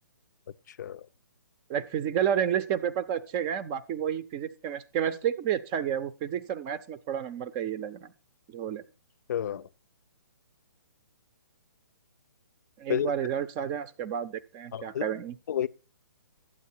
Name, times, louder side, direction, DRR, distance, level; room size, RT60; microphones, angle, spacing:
voice 1, 0.7-1.1 9.3-9.7 12.9-13.1 14.7-15.0 15.5-15.7, left 10 dB, 55° left, 0.5 m, -30 dB
voice 2, 1.7-8.1 8.5-8.8 12.8-15.3, right 9 dB, 25° right, 0.6 m, -30 dB
12.0 x 8.6 x 4.4 m
hypercardioid pair, 140°, 11 cm